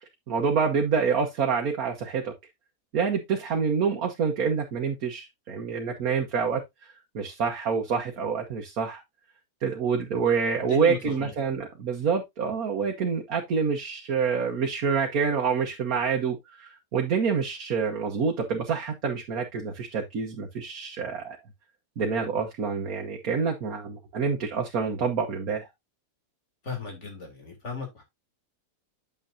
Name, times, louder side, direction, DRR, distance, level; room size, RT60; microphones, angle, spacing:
voice 1, 0.3-2.3 2.9-9.0 9.6-21.4 22.0-25.7, right 6 dB, 60° right, 1.6 m, -27 dB
voice 2, 10.6-11.3 26.6-28.0, left 5 dB, 45° left, 3.2 m, -36 dB
8.9 x 6.9 x 2.7 m
omnidirectional pair, 1.8 m